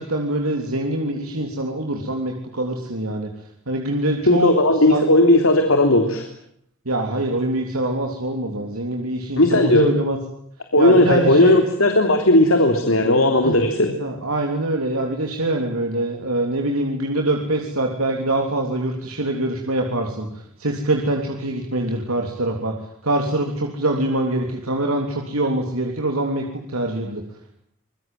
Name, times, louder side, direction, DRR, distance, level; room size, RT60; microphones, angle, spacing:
voice 1, 0.0-3.3 3.7-4.5 4.9-5.0 6.9-10.2 10.8-11.6 13.4-13.6 14.0-22.7 23.0-27.2, right 1 dB, 90° right, 2 dB, 3.5 m, -24 dB
voice 2, 4.3-6.2 9.4-9.9 10.7-13.9, left 1 dB, 70° left, 5 dB, 3.4 m, -16 dB
27.0 x 22.0 x 9.3 m, 0.69 s
head